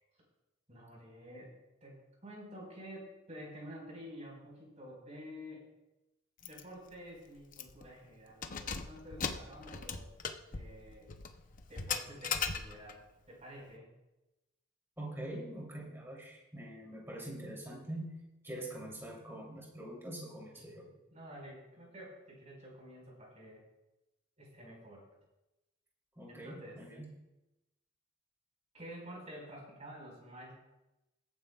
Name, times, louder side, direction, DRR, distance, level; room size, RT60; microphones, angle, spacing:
voice 1, 0.7-1.5 1.8-5.7 6.4-10.1 10.4-11.1 11.7-13.9 20.5-23.6 24.4-25.1 26.3-26.8 28.7-30.5, equal, 35° right, -2 dB, 4.9 m, -50 dB
Keys jangling, 6.4-6.6 7.0-7.1 7.5-7.9 8.3-13.0, left 6 dB, 40° left, 0.7 m, -39 dB
voice 2, 15.0-18.2 18.4-20.9 26.1-27.1, right 1 dB, 10° right, -3 dB, 3.2 m, -44 dB
21.5 x 9.4 x 2.4 m, 0.96 s
head